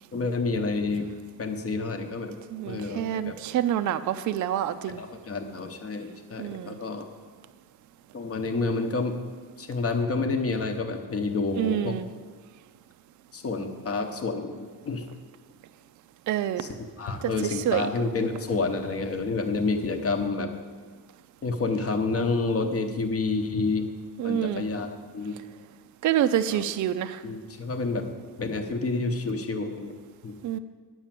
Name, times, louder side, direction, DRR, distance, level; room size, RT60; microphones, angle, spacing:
voice 1, 0.1-1.1 1.4-2.4 2.7-3.3 5.0-7.1 8.1-9.2 9.6-12.0 13.3-15.0 16.6-16.7 17.0-20.5 21.4-23.9 24.2-25.4 26.5-26.6 27.2-28.1 28.4-29.9 30.2-30.4, left 3 dB, 35° left, 6 dB, 0.9 m, -29 dB
voice 2, 2.5-5.0 6.4-6.8 11.6-12.0 16.3-16.6 17.7-17.8 24.2-24.7 26.0-27.2 30.4-30.6, right 11 dB, 50° right, 11 dB, 0.4 m, -27 dB
9.6 x 6.2 x 7.5 m, 1.5 s
cardioid pair, 165°, 41 cm